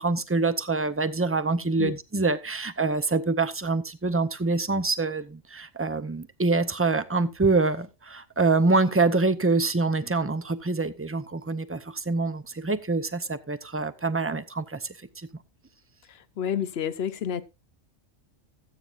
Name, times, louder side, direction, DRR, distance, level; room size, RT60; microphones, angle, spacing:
voice 1, 0.0-15.3, right 3 dB, 20° right, 0.4 m, -25 dB
voice 2, 16.1-17.4, left 8 dB, 60° left, 1.0 m, -30 dB
14.5 x 9.1 x 2.5 m
omnidirectional pair, 1.3 m